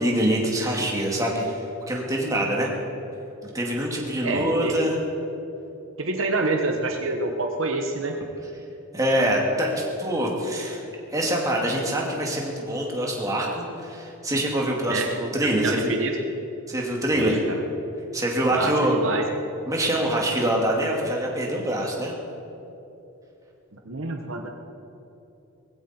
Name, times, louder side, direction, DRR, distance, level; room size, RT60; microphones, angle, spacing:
voice 1, 0.0-2.7 3.4-5.0 8.9-10.8 11.1-15.9 16.7-17.4 18.1-19.0 19.7-22.1, right 1 dB, 15° right, -2 dB, 2.3 m, -25 dB
voice 2, 4.2-4.8 6.0-8.1 14.9-15.1 15.6-16.1 17.1-17.6 18.5-19.2 23.9-24.5, right 3 dB, 65° right, 3 dB, 1.1 m, -27 dB
19.5 x 15.5 x 4.4 m, 3.0 s
head